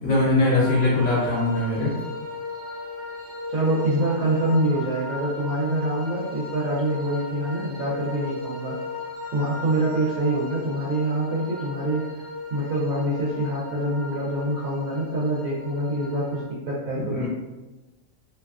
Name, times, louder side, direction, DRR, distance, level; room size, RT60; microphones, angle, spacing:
voice 1, 0.0-1.9 16.9-17.3, left 2 dB, 65° left, -7 dB, 0.9 m, -21 dB
sound 1, 0.6-16.4, left 2 dB, 60° right, 0.9 m, -36 dB
voice 2, 3.5-8.8 9.3-12.0 12.5-17.3, right 1 dB, 85° right, -5 dB, 1.1 m, -25 dB
2.7 x 2.3 x 2.3 m, 1.1 s
omnidirectional pair, 1.4 m